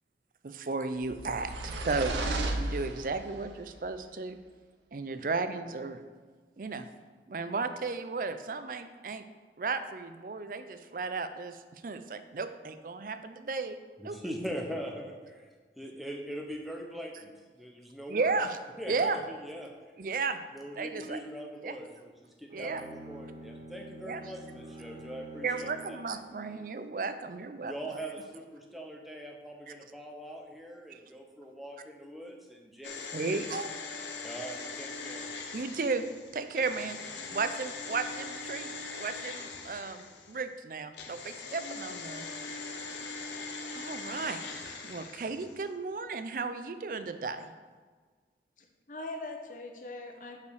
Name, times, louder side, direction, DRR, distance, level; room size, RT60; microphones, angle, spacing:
voice 1, 0.4-4.4 4.9-6.0 6.6-6.9 7.3-9.2 9.6-13.8 14.0-14.2 18.1-18.6 18.9-19.2 20.0-20.4 20.8-21.2 21.6-21.7 22.5-22.9 24.1-24.2 25.4-28.0 29.7-29.8 30.9-31.0 33.1-33.7 35.5-36.0 36.3-37.0 37.3-42.3 43.7-47.5, right 4 dB, 50° right, 10 dB, 0.4 m, -34 dB
sound 1, 1.0-3.4, right 2 dB, 85° right, 0.7 m, -34 dB
voice 2, 14.0-15.5 15.8-17.3 17.6-18.3 18.8-19.7 20.5-26.0 27.6-33.0 33.3-33.6 34.2-35.3, equal, ahead, 1 dB, 0.8 m, -42 dB
Bowed string instrument, 22.5-26.7, right 1 dB, 20° right, 1.1 m, -47 dB
sound 2, 32.8-40.4 40.9-45.6 45.9-46.0, left 4 dB, 90° left, 0.8 m, -41 dB
voice 3, 48.6-50.4, left 2 dB, 45° left, 3 dB, 0.8 m, -41 dB
5.4 x 5.1 x 6.3 m, 1.5 s
head